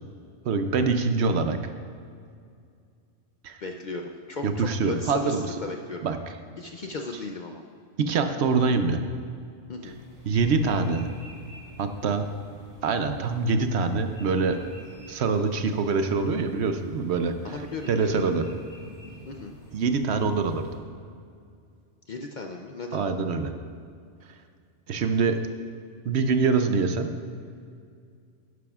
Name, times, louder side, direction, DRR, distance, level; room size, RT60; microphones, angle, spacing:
voice 1, 0.4-1.6 3.4-3.6 4.4-5.5 6.0-6.2 8.0-9.0 10.3-11.1 11.8-12.2 12.8-14.6 15.1-17.3 17.9-18.5 19.7-20.6 22.9-23.5 24.9-25.4 26.0-27.1, right 4 dB, 65° right, 8 dB, 0.8 m, -24 dB
voice 2, 3.6-6.0 6.6-7.6 9.7-10.0 17.4-18.2 19.3-19.6 22.1-23.0, left 3 dB, 55° left, 3 dB, 0.5 m, -36 dB
sound 1, 9.8-20.8, left 1 dB, 35° right, 2.8 m, -48 dB
12.0 x 11.0 x 2.4 m, 2.3 s
omnidirectional pair, 1.3 m